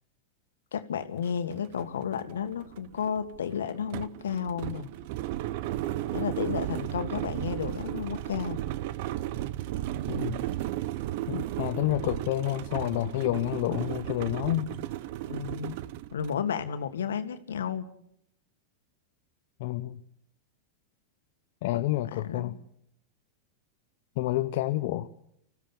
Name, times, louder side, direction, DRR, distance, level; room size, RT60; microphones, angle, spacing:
voice 1, 0.7-4.9 6.1-8.7 15.3-15.8 16.1-17.9 21.7-21.8 22.1-22.5, left 7 dB, 80° left, 9 dB, 1.8 m, -32 dB
sound 1, 1.2-1.3 1.7-16.4, right 14 dB, 60° right, 0.8 m, -34 dB
voice 2, 10.1-10.4 11.3-14.7 19.6-20.0 21.6-22.5 24.2-25.1, left 15 dB, 60° left, 7 dB, 0.9 m, -29 dB
25.5 x 15.5 x 7.3 m, 0.71 s
hypercardioid pair, 100°, 0 cm